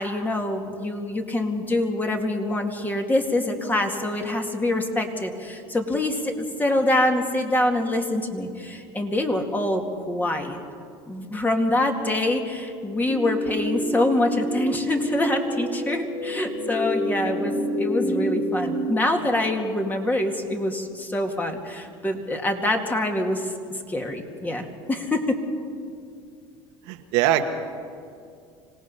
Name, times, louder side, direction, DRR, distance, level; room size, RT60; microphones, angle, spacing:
voice 1, 0.0-10.6 11.1-23.5 23.9-25.4, left 1 dB, 15° left, 3 dB, 2.2 m, -25 dB
sound 1, 13.1-18.8, equal, 55° left, 4.5 m, -28 dB
voice 2, 26.9-27.4, right 13 dB, 75° right, 6 dB, 1.4 m, -21 dB
26.0 x 18.0 x 5.6 m, 2.3 s
supercardioid pair, 105°, 12 cm